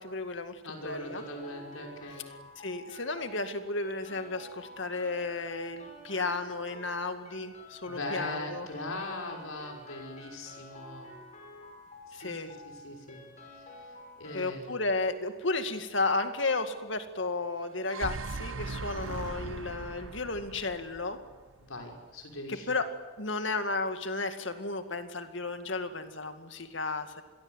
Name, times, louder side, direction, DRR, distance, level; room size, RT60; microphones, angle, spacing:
voice 1, 0.0-0.6 0.8-1.2 2.6-8.7 12.1-12.5 14.3-21.2 22.7-22.9 23.2-27.2, left 3 dB, 65° left, 8 dB, 2.1 m, -33 dB
voice 2, 0.6-2.2 7.9-11.1 12.1-13.2 14.2-14.7 21.6-22.7, left 2 dB, 90° left, 2 dB, 5.9 m, -40 dB
sound 1, 0.9-14.4, left 1 dB, 35° left, 6.0 m, -50 dB
sound 2, 17.6-21.8, right 3 dB, 75° right, 0.8 m, -39 dB
27.5 x 21.5 x 8.2 m, 1.3 s
head